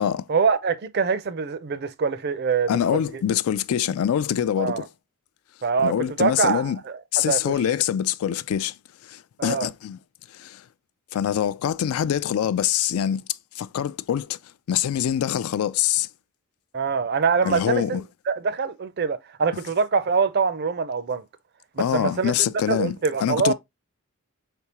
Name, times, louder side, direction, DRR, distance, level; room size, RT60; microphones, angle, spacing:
voice 1, 0.3-3.2 4.6-4.8 5.6-5.9 6.2-7.5 9.4-9.7 16.7-21.2 21.8-22.3 22.7-23.5, right 5 dB, 50° right, 0.5 m, -24 dB
voice 2, 2.7-4.9 5.8-6.8 7.1-8.8 9.0-10.0 10.3-10.6 11.1-13.2 13.6-14.4 14.7-16.1 17.4-18.0 21.8-23.5, left 9 dB, 80° left, 0.3 m, -24 dB
4.6 x 3.5 x 2.8 m
head